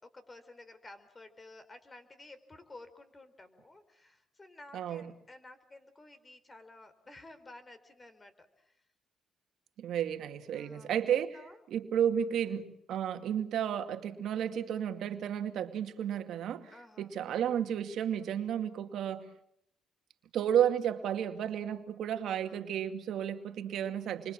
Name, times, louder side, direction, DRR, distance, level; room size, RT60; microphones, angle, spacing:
voice 1, 0.0-8.7 10.5-11.6 12.4-12.5 16.7-17.1, left 2 dB, 25° left, 11 dB, 4.5 m, -53 dB
voice 2, 4.7-5.1 9.8-11.4 11.7-19.3 20.3-24.3, right 9 dB, 75° right, 7 dB, 2.2 m, -32 dB
29.0 x 24.0 x 7.5 m, 0.73 s
cardioid pair, 90°, 0 cm